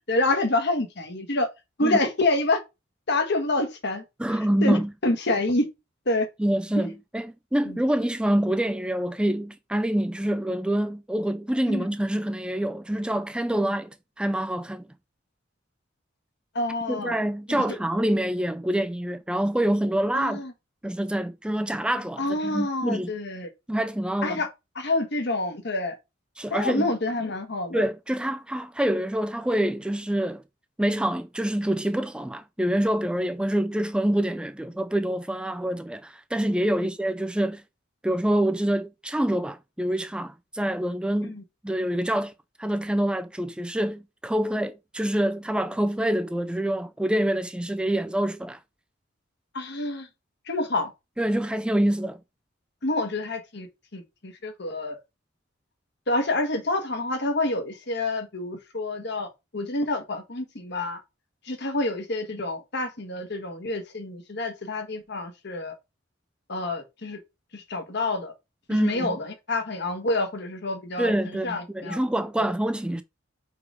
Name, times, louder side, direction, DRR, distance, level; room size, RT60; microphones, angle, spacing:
voice 1, 0.0-1.5 1.8-2.6 3.1-4.0 4.6-4.8 5.0-5.7 6.1-6.3 6.8-6.9 7.6-7.8 11.7-11.8 16.5-17.2 17.5-17.6 20.1-20.5 22.2-23.5 24.2-24.5 24.7-25.9 26.5-27.8 41.2-41.4 49.5-50.1 50.5-50.9 52.8-53.7 53.9-55.0 56.1-61.0 61.4-65.7 66.5-67.2 67.5-68.3 68.7-72.0 72.4-72.5, left 2 dB, 60° left, 1.4 m, -27 dB
voice 2, 4.2-4.9 6.4-14.9 16.9-20.4 20.8-23.1 23.7-24.4 26.4-26.9 27.7-30.4 30.8-37.6 38.0-41.4 41.6-42.3 42.6-48.6 51.2-52.2 68.7-69.2 71.0-73.0, right 1 dB, 5° right, 0.3 m, -26 dB
4.9 x 4.8 x 4.8 m
head